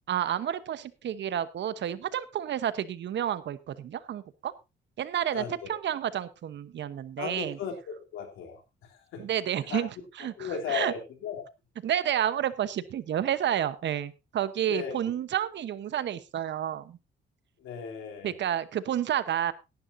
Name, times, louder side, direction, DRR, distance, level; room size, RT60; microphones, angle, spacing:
voice 1, 0.1-4.5 5.0-7.6 9.2-9.9 10.2-10.9 11.8-17.0 18.2-19.5, right 10 dB, 65° right, 14 dB, 1.1 m, -30 dB
voice 2, 5.3-5.8 7.2-9.2 9.7-9.8 10.4-11.4 13.6-13.7 14.7-15.1 17.6-18.3, left 6 dB, 85° left, 2 dB, 3.3 m, -36 dB
17.0 x 11.0 x 2.7 m, 0.26 s
cardioid pair, 90°, 20 cm